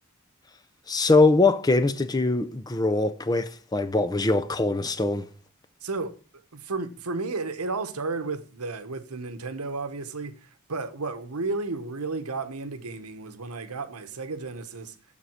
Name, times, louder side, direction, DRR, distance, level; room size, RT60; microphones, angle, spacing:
voice 1, 0.9-5.3, left 3 dB, 15° left, 0.5 m, -22 dB
voice 2, 5.8-6.2 6.5-14.9, right 3 dB, 90° right, 1.1 m, -33 dB
7.5 x 7.0 x 6.3 m
head